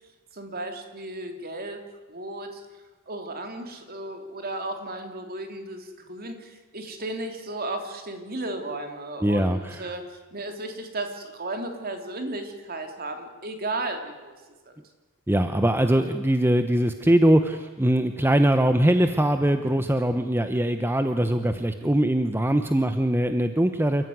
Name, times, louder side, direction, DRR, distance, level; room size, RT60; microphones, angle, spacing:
voice 1, 0.3-1.8 2.1-2.6 3.1-10.0 10.3-14.3 14.7-14.8, right 2 dB, 45° right, 5 dB, 3.2 m, -34 dB
voice 2, 9.2-9.9 15.3-24.1, right 1 dB, 10° right, 8 dB, 0.9 m, -22 dB
28.5 x 14.5 x 9.5 m, 1.3 s
head